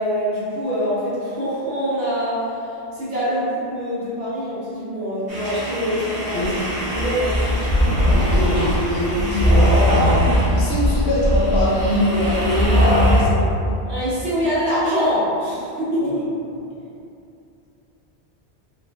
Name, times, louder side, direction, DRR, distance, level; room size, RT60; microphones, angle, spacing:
voice 1, 0.0-2.4 2.9-6.4 6.9-7.5 13.8-16.1, equal, 80° right, -11 dB, 1.5 m, -24 dB
sound 1, 5.3-13.2, right 1 dB, 65° right, 1.2 m, -29 dB
voice 2, 6.3-7.0 8.1-13.5 16.0-16.2, left 1 dB, 70° left, -6 dB, 1.0 m, -23 dB
sound 2, 6.4-13.5, equal, 45° right, 1.0 m, -18 dB
3.8 x 3.0 x 2.4 m, 2.6 s
omnidirectional pair, 1.1 m